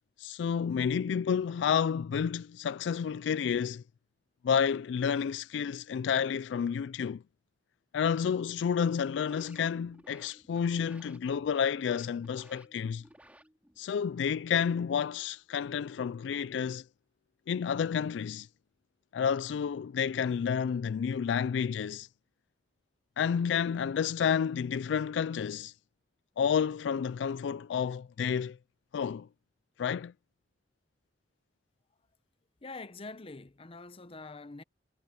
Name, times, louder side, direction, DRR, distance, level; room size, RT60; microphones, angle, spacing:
voice 1, 0.2-3.8 4.4-7.2 7.9-13.0 13.8-16.8 17.5-18.5 19.1-22.1 23.2-25.7 26.4-28.6 28.9-29.3 29.8-30.1, left 7 dB, 75° left, 0.3 m, -30 dB
sound 1, 8.9-13.9, right 1 dB, 10° right, 3.4 m, -58 dB
voice 2, 32.6-34.6, left 3 dB, 30° left, 0.8 m, -45 dB
head